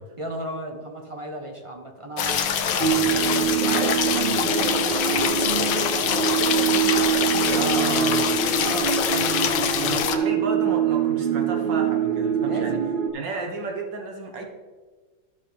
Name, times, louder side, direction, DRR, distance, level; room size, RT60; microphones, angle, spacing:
voice 1, 0.2-6.7 7.3-8.2 8.6-9.0 9.4-10.1 12.4-12.9, right 1 dB, 20° right, 1 dB, 1.0 m, -36 dB
sound 1, 2.2-10.2, left 8 dB, 90° left, 1.4 m, -24 dB
sound 2, 2.8-13.1, right 8 dB, 45° right, 0.6 m, -24 dB
voice 2, 7.5-8.2 9.7-12.8 13.1-14.4, right 3 dB, 85° right, 1 dB, 1.9 m, -32 dB
13.5 x 6.2 x 3.4 m, 1.4 s
omnidirectional pair, 1.9 m